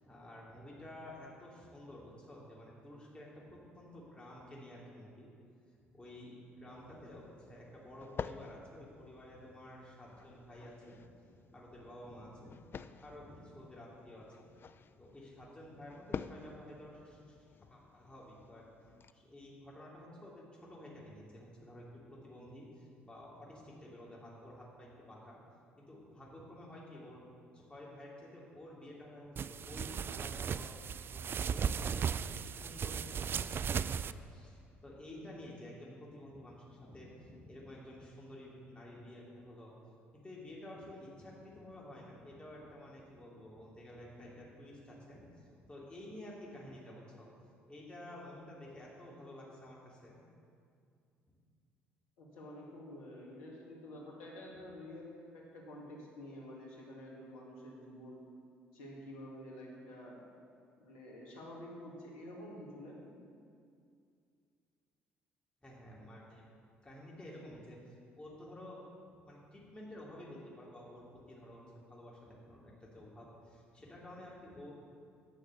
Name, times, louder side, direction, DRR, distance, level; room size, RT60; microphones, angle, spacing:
voice 1, 0.0-5.3 5.9-12.5 12.9-14.5 15.0-18.7 19.1-25.4 25.8-27.3 27.5-30.7 31.1-39.7 40.1-47.3 47.7-50.2 65.6-66.5 66.8-68.9 69.2-71.6 71.9-74.7, left 1 dB, 15° left, -5 dB, 2.9 m, -51 dB
sound 1, 6.7-19.1, left 6 dB, 40° left, 0.4 m, -50 dB
sound 2, 29.4-34.1, right 7 dB, 40° right, 0.3 m, -36 dB
voice 2, 52.2-58.2 58.7-60.2 60.8-63.2, left 1 dB, 70° left, -3 dB, 2.2 m, -49 dB
10.5 x 6.4 x 6.8 m, 2.3 s
hypercardioid pair, 50°, 6 cm